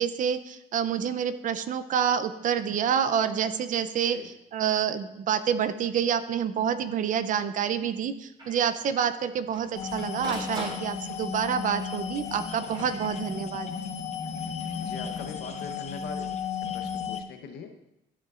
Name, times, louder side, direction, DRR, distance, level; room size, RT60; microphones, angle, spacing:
voice 1, 0.0-13.7, right 8 dB, 50° right, 13 dB, 0.5 m, -28 dB
Printer, 6.7-6.8 7.2-7.3 7.6-7.7 8.4-8.6 9.3-11.4 12.2-13.7 15.3-15.8, right 1 dB, 25° right, 3.4 m, -42 dB
sound 1, 9.7-17.2, left 7 dB, 45° left, 0.8 m, -34 dB
voice 2, 14.8-16.3 16.6-17.8, left 6 dB, 75° left, 6 dB, 1.0 m, -41 dB
13.0 x 6.7 x 2.5 m, 0.87 s
cardioid pair, 110°, 17 cm